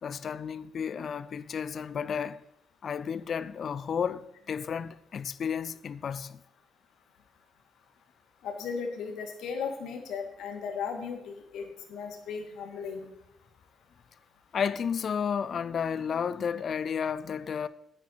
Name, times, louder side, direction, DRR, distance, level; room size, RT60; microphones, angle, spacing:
voice 1, 0.0-2.4 2.8-6.4 14.5-17.7, left 7 dB, 55° left, 0.5 m, -32 dB
voice 2, 8.4-13.1, left 6 dB, 80° left, 1.7 m, -36 dB
9.2 x 8.7 x 4.6 m
cardioid pair, 90°, 0 cm